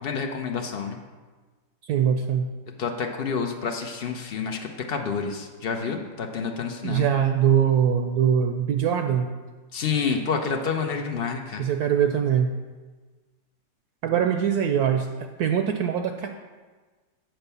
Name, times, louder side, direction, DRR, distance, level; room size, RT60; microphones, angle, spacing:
voice 1, 0.0-1.0 2.8-7.1 9.7-11.7, left 5 dB, 90° left, 3 dB, 0.5 m, -28 dB
voice 2, 1.9-2.5 6.8-9.3 11.6-12.5 14.0-15.1 15.4-16.3, right 8 dB, 70° right, 6 dB, 0.9 m, -22 dB
8.0 x 4.5 x 6.8 m, 1.3 s
omnidirectional pair, 1.9 m